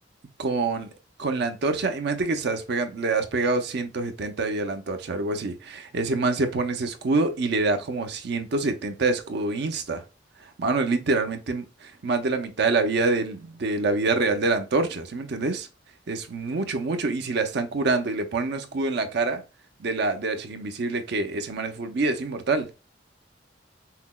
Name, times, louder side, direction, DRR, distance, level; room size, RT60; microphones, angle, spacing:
voice 1, 0.4-0.9 1.2-10.0 10.4-15.7 16.1-19.4 19.8-22.7, right 3 dB, 65° right, 0.5 m, -26 dB
5.6 x 2.0 x 2.2 m
head